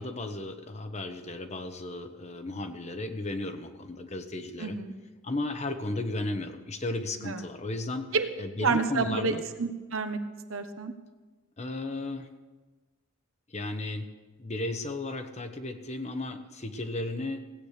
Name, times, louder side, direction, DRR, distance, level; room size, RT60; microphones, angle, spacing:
voice 1, 0.0-4.8 5.2-8.1 8.4-9.4 11.6-12.3 13.5-14.1 14.4-17.4, left 2 dB, 30° left, 8 dB, 1.0 m, -34 dB
voice 2, 4.6-4.9 7.2-7.4 8.1-8.3 8.6-10.2 10.5-10.9, right 4 dB, 70° right, 8 dB, 1.1 m, -29 dB
16.5 x 9.0 x 6.6 m, 1.2 s
head